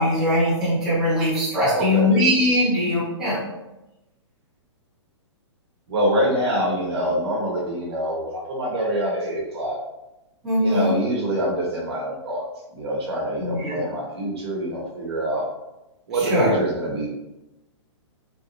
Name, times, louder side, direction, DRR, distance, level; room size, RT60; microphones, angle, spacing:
voice 1, 0.0-3.4 10.4-10.9 13.4-13.8 16.3-16.5, left 1 dB, 5° right, -13 dB, 0.7 m, -21 dB
voice 2, 1.7-2.1 5.9-9.8 10.6-12.5 12.7-15.4 16.1-17.1, right 1 dB, 55° right, -3 dB, 1.1 m, -25 dB
4.0 x 2.1 x 2.6 m, 0.95 s
hypercardioid pair, 175°, 16 cm